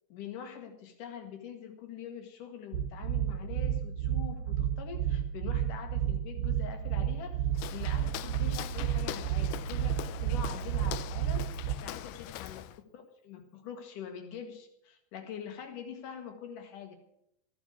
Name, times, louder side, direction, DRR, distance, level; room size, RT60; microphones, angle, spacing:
voice 1, 0.1-11.5 11.8-12.6 12.9-17.0, left 8 dB, 60° left, 5 dB, 3.0 m, -44 dB
sound 1, 2.7-11.8, right 10 dB, 50° right, 2.0 m, -31 dB
Walk footsteps, 7.5-12.8, left 14 dB, 90° left, 2.7 m, -42 dB
14.5 x 9.7 x 7.2 m, 0.78 s
omnidirectional pair, 4.6 m